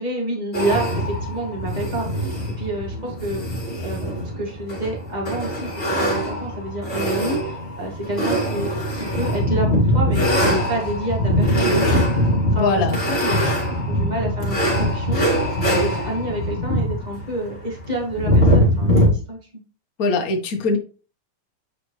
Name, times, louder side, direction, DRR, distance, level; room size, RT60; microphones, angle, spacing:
voice 1, 0.0-3.4 3.8-13.5 13.9-19.4, right 1 dB, 15° right, -1 dB, 1.6 m, -29 dB
sound 1, 0.5-19.1, equal, 20° left, 2.6 m, -22 dB
voice 2, 12.5-13.0 20.0-20.8, left 3 dB, 70° left, 3 dB, 0.8 m, -21 dB
8.0 x 5.0 x 3.2 m, 0.37 s
omnidirectional pair, 3.4 m